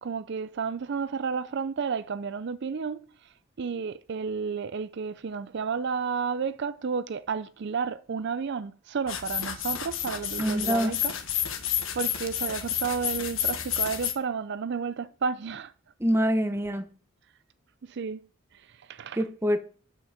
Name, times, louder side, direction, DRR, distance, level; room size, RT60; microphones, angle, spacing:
voice 1, 0.0-11.1 11.9-15.7 17.8-18.2 18.5-19.2, right 5 dB, 55° right, 0.4 m, -32 dB
sound 1, 9.1-14.1, left 9 dB, 65° left, 1.3 m, -30 dB
voice 2, 10.4-10.9 16.0-16.8 19.2-19.6, equal, 10° right, 0.8 m, -25 dB
9.9 x 5.8 x 6.6 m
head